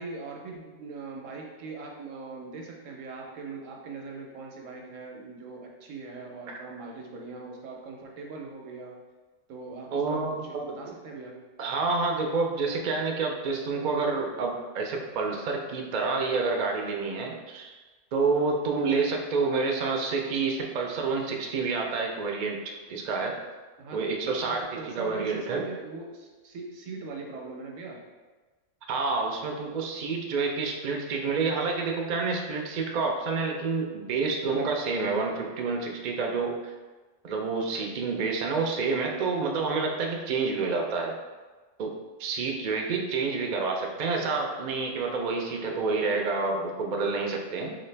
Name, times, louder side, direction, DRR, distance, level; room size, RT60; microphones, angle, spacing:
voice 1, 0.0-9.0 9.5-11.4 18.4-18.5 23.8-24.0 24.4-28.0, right 3 dB, 85° right, 0 dB, 1.0 m, -41 dB
voice 2, 9.9-10.7 11.6-17.7 18.1-23.4 23.9-25.6 28.9-36.7 37.2-41.1 41.8-41.9 42.2-47.8, right 4 dB, 60° right, 1 dB, 0.4 m, -28 dB
4.0 x 2.5 x 3.3 m, 1.3 s
omnidirectional pair, 1.3 m